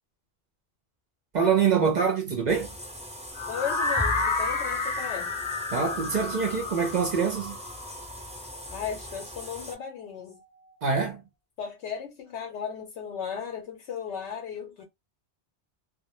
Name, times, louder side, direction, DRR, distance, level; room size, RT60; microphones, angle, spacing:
voice 1, 1.3-2.7 5.7-7.6 10.8-11.2, right 6 dB, 55° right, 0.5 m, -25 dB
sound 1, 2.5-9.7, left 1 dB, 10° right, 0.5 m, -40 dB
sound 2, 3.3-9.3, left 3 dB, 45° left, 0.7 m, -31 dB
voice 2, 3.5-5.4 8.7-10.4 11.6-14.8, left 7 dB, 85° left, 0.9 m, -36 dB
2.1 x 2.1 x 2.9 m
omnidirectional pair, 1.1 m